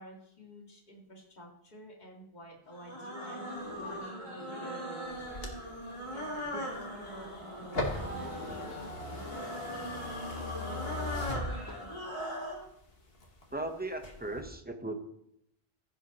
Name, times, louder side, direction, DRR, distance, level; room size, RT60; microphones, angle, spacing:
voice 1, 0.0-5.5 6.1-8.4, equal, 45° left, -1 dB, 2.1 m, -51 dB
sound 1, 2.7-12.6, equal, 30° left, 2.1 m, -40 dB
sound 2, 5.1-12.1 12.6-13.6 13.9-14.4, left 2 dB, 65° left, 1.7 m, -39 dB
voice 2, 13.5-15.0, right 2 dB, 10° right, 5 dB, 0.8 m, -37 dB
15.0 x 7.9 x 3.0 m, 0.74 s
omnidirectional pair, 1.1 m